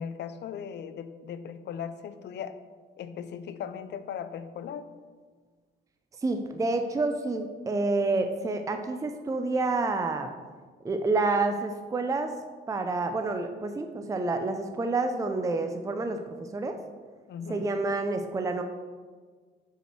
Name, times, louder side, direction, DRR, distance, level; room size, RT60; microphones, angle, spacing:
voice 1, 0.0-2.6 3.0-4.9 17.3-17.7, left 7 dB, 60° left, 11 dB, 0.5 m, -38 dB
voice 2, 6.2-10.3 10.8-12.3 12.7-16.2 16.5-16.8 17.5-18.6, right 3 dB, 15° right, 6 dB, 0.4 m, -28 dB
5.1 x 4.8 x 4.4 m, 1.5 s
cardioid pair, 90°, 20 cm